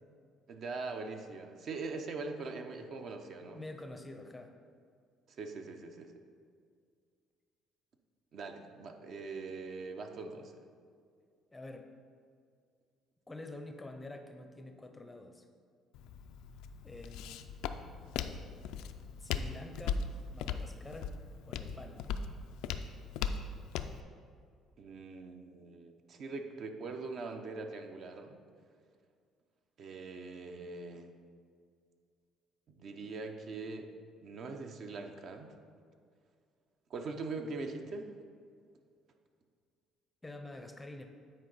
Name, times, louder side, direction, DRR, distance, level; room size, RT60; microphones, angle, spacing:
voice 1, 0.5-3.6 5.3-6.1 8.3-10.5 24.8-28.4 29.8-31.1 32.7-33.9 34.2-35.5 36.9-38.1, right 3 dB, 50° right, 5 dB, 0.6 m, -42 dB
voice 2, 3.5-4.5 11.5-11.9 13.3-15.5 16.8-17.4 19.2-20.0 20.3-21.2 21.5-22.1 40.2-41.1, left 2 dB, 10° left, 5 dB, 0.5 m, -47 dB
Walk footsteps, 15.9-24.0, left 6 dB, 85° left, 0.3 m, -39 dB
9.4 x 4.4 x 4.0 m, 2.2 s
cardioid pair, 120°, 0 cm